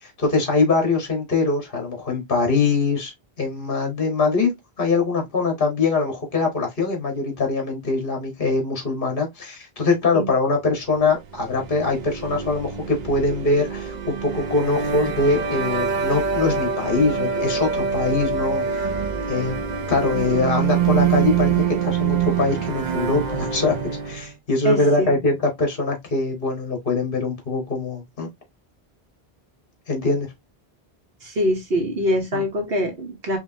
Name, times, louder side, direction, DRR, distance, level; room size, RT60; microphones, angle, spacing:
voice 1, 0.0-3.1 3.4-4.5 4.8-18.9 19.3-19.6 19.9-23.7 24.0-28.3 29.9-30.3 32.3-32.4, left 3 dB, 55° left, 1.6 m, -23 dB
sound 1, 11.3-24.3, right 7 dB, 50° right, 0.6 m, -25 dB
voice 2, 24.6-25.2 31.2-33.4, equal, 65° right, 1.3 m, -24 dB
4.8 x 2.8 x 2.7 m
omnidirectional pair, 1.1 m